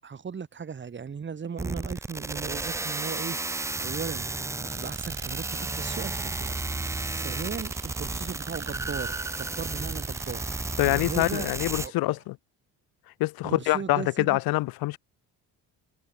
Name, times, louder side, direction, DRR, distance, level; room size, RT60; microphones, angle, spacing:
voice 1, 0.0-12.1 13.4-14.4, right 6 dB, 30° right, 6.4 m, -38 dB
sound 1, 1.6-11.9, right 3 dB, 10° right, 0.5 m, -33 dB
sound 2, 4.7-11.7, right 17 dB, 85° right, 7.4 m, -49 dB
voice 2, 10.8-12.4 13.2-15.0, left 19 dB, 80° left, 0.9 m, -25 dB
cardioid pair, 135°, 35 cm